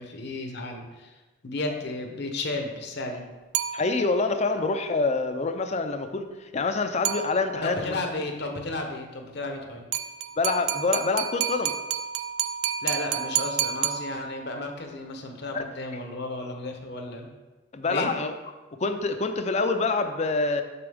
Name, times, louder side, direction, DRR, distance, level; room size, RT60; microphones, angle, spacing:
voice 1, 0.0-3.2 7.6-9.9 12.8-17.3 17.8-18.1, left 2 dB, 55° left, 4 dB, 0.9 m, -33 dB
sound 1, 3.5-4.3 7.0-7.8 9.9-14.6, right 10 dB, 85° right, 0.4 m, -30 dB
voice 2, 3.7-8.0 10.4-11.7 15.5-15.6 17.7-18.3 18.8-20.6, left 3 dB, 35° left, 8 dB, 0.5 m, -26 dB
6.7 x 6.0 x 3.5 m, 1.2 s
head